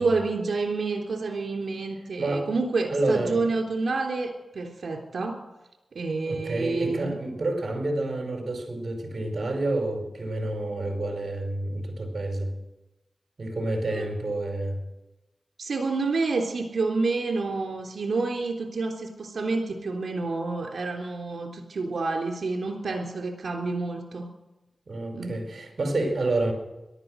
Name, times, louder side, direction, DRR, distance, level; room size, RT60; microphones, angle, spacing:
voice 1, 0.0-5.4 5.9-7.1 13.9-14.1 15.6-24.3 25.1-25.3, right 3 dB, 75° right, 3 dB, 3.5 m, -28 dB
voice 2, 2.2-2.5 2.9-3.5 6.3-12.5 13.4-14.8 24.9-26.5, right 2 dB, 55° right, 4 dB, 4.8 m, -29 dB
18.0 x 12.5 x 6.5 m, 0.99 s
cardioid pair, 45°, 0 cm